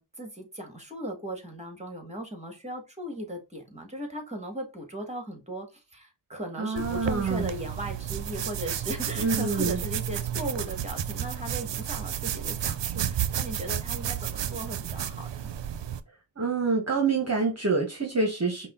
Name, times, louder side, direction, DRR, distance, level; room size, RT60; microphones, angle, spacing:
voice 1, 0.0-15.5, right 1 dB, 15° right, 1.9 m, -37 dB
voice 2, 6.6-7.5 9.2-9.8 16.4-18.7, right 4 dB, 35° right, 1.1 m, -26 dB
sound 1, 6.8-16.0, right 10 dB, 65° right, 0.6 m, -32 dB
5.4 x 2.4 x 3.7 m
cardioid pair, 40°, 48 cm